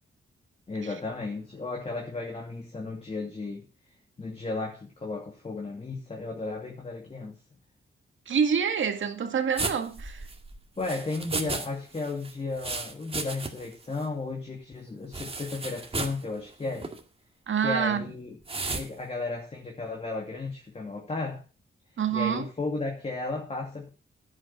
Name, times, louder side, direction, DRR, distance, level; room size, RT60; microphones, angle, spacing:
voice 1, 0.7-3.7 4.2-7.3 10.8-17.0 17.6-18.4 18.7-21.4 22.1-23.9, left 3 dB, 30° left, 2.6 m, -34 dB
voice 2, 8.3-10.2 11.3-11.5 17.5-18.0 22.0-22.5, right 7 dB, 65° right, 2.0 m, -27 dB
sound 1, 9.6-11.7 11.9-13.7 14.0-14.1 15.1-16.2 16.7-17.0 18.5-18.9, right 3 dB, 25° right, 2.1 m, -34 dB
11.0 x 8.7 x 6.1 m
wide cardioid pair, 115°, 21 cm